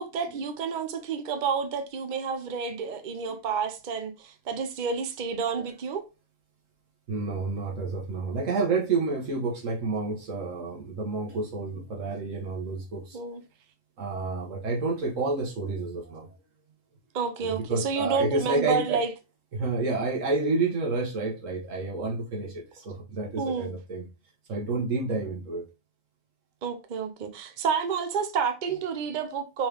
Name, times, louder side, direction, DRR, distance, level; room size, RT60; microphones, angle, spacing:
voice 1, 0.0-6.1 13.1-13.4 17.1-19.1 23.4-23.8 26.6-29.7, right 5 dB, 45° right, 0.7 m, -30 dB
voice 2, 7.1-13.2 14.0-16.3 17.4-19.0 19.5-24.1 24.5-25.7, right 3 dB, 85° right, 1.6 m, -29 dB
4.4 x 3.2 x 3.3 m
omnidirectional pair, 1.3 m